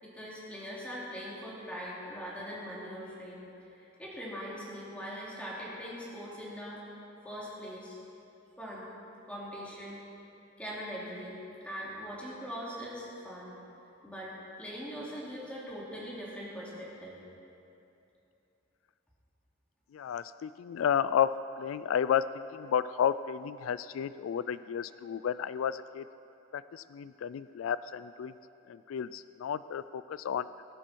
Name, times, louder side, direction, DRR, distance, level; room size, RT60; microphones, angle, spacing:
voice 1, 0.0-3.4 3.7-6.8 7.2-7.9 8.6-8.9 9.3-10.0 10.6-11.4 11.6-13.5 14.0-17.2, equal, 5° left, -7 dB, 3.1 m, -41 dB
voice 2, 19.9-21.3 21.6-26.0 26.5-28.3 28.7-30.5, left 8 dB, 90° left, 16 dB, 0.3 m, -32 dB
18.5 x 11.5 x 4.5 m, 2.8 s
head